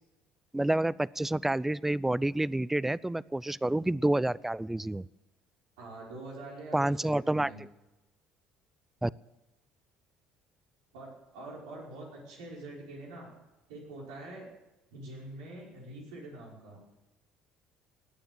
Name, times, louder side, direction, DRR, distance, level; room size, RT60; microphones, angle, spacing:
voice 1, 0.5-5.1 6.7-7.7 9.0-9.1, right 1 dB, 10° right, 22 dB, 0.5 m, -29 dB
voice 2, 5.8-7.6 10.9-13.3 13.7-14.5 14.9-16.8, right 2 dB, 85° right, -3 dB, 5.3 m, -45 dB
19.5 x 9.2 x 7.7 m, 1.0 s
hypercardioid pair, 65°, 3 cm